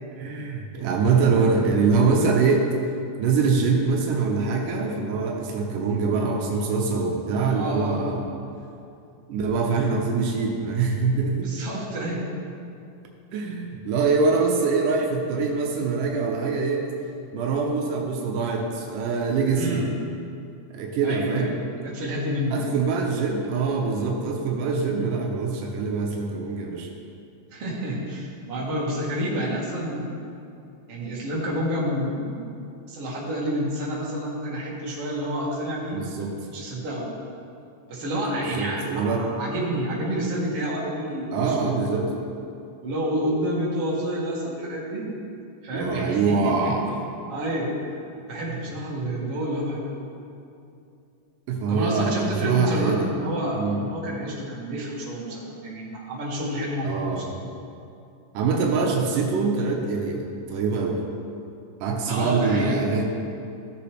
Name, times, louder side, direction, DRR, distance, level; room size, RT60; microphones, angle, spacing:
voice 1, 0.2-2.6 3.2-8.2 9.3-11.5 13.3-16.8 17.3-19.8 20.7-21.6 22.5-26.9 35.9-36.3 38.4-39.3 41.3-42.1 45.7-46.8 48.5-48.6 51.5-53.0 53.5-53.8 56.8-57.3 58.3-61.0 61.8-63.0, right 4 dB, 90° right, 0 dB, 2.5 m, -24 dB
voice 2, 7.5-8.2 11.4-12.2 19.5-19.9 21.0-22.7 27.5-30.1 30.9-32.4 32.9-36.0 36.5-37.1 37.9-42.0 42.8-45.1 45.6-46.7 47.3-47.7 48.3-50.0 51.7-57.3 62.1-62.8, equal, 50° right, -6 dB, 2.7 m, -29 dB
16.0 x 7.0 x 3.3 m, 2.6 s
omnidirectional pair, 3.7 m